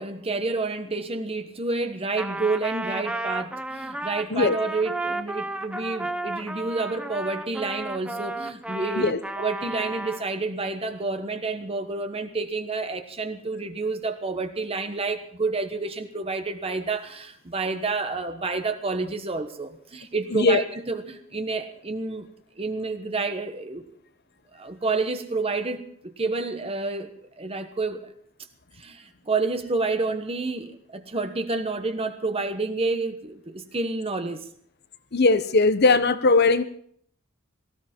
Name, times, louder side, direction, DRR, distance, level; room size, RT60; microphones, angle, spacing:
voice 1, 0.0-9.1 9.4-22.3 22.6-23.8 24.5-25.9 26.2-27.1 27.4-28.1 28.8-34.5, right 3 dB, 30° right, 7 dB, 1.2 m, -29 dB
Trumpet, 2.2-10.3, right 2 dB, 5° right, 0.9 m, -33 dB
voice 2, 20.3-20.6 35.1-36.6, left 3 dB, 50° left, 13 dB, 1.0 m, -19 dB
18.5 x 16.5 x 4.5 m, 0.64 s
head